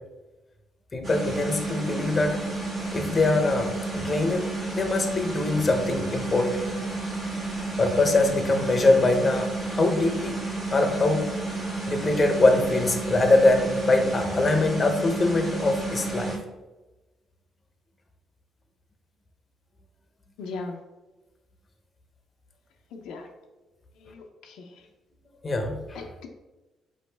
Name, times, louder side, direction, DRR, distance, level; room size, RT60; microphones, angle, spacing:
voice 1, 0.9-2.4 2.9-6.6 7.8-10.4 10.7-11.3 11.9-16.3 25.4-26.1, left 2 dB, 30° left, 5 dB, 0.7 m, -23 dB
sound 1, 1.0-16.4, right 2 dB, 45° right, 1.5 m, -31 dB
voice 2, 20.4-20.8 22.9-23.3 24.0-24.7 25.9-26.3, left 3 dB, 90° left, 3 dB, 0.5 m, -38 dB
5.0 x 3.1 x 3.3 m, 1.1 s
cardioid pair, 90°, 0 cm